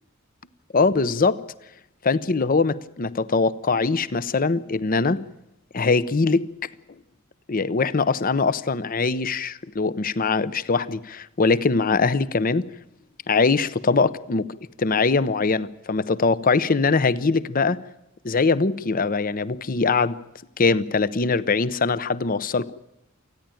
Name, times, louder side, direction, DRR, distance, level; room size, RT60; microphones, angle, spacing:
voice 1, 0.7-1.4 2.0-5.2 5.7-6.5 7.5-12.7 13.3-14.5 14.8-17.8 18.2-20.1 20.6-22.7, left 4 dB, 40° left, 17 dB, 0.7 m, -22 dB
28.0 x 10.5 x 9.0 m, 0.88 s
head